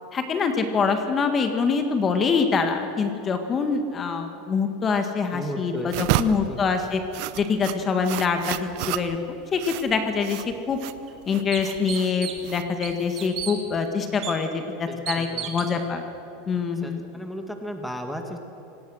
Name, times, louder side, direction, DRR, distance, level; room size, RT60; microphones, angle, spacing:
voice 1, 0.1-7.0 7.4-10.8 11.3-16.0 16.5-17.0, left 5 dB, 25° left, 6 dB, 1.8 m, -25 dB
voice 2, 5.3-6.6 14.9-15.5 15.7-15.8 16.5-18.4, equal, ahead, 4 dB, 2.0 m, -35 dB
sound 1, 5.9-13.8, right 14 dB, 60° right, 0.9 m, -32 dB
sound 2, 10.5-10.6 11.1-11.2 11.5-12.5 12.8-13.5 14.2-14.3 15.1-15.7, right 10 dB, 40° right, 2.9 m, -33 dB
26.5 x 18.5 x 6.5 m, 2.8 s
supercardioid pair, 135°, 0 cm